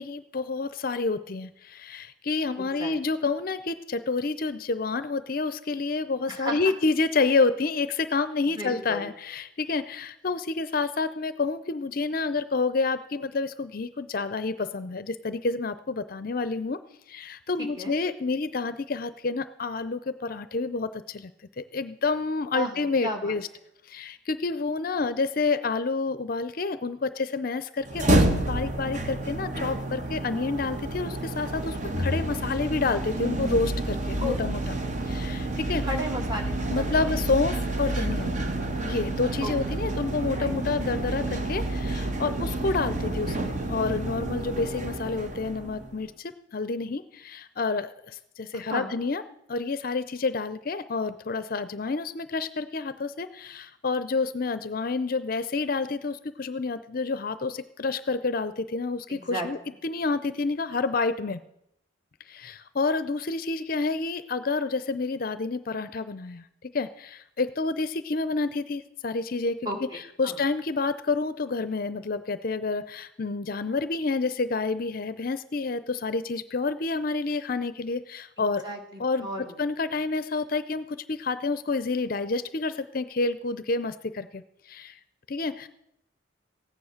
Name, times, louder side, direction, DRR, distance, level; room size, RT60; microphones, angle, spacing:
voice 1, 0.0-16.8 17.1-21.3 21.6-23.5 23.9-34.8 35.1-35.8 36.7-38.3 38.8-49.2 49.5-59.6 59.8-61.4 62.3-69.6 70.2-78.6 79.0-79.3 79.6-85.0 85.3-85.7, left 3 dB, 45° left, 13 dB, 0.5 m, -29 dB
voice 2, 2.6-2.9 6.3-6.7 8.4-9.1 17.6-18.0 22.5-23.4 34.2-34.6 35.8-37.1 39.4-39.5 40.4-40.6 48.7-49.0 59.1-59.5 69.7-70.4 78.4-79.6, equal, 20° right, 2 dB, 2.2 m, -34 dB
sound 1, 27.8-46.0, right 1 dB, 40° right, 1.2 m, -29 dB
15.5 x 9.8 x 6.4 m, 0.79 s
head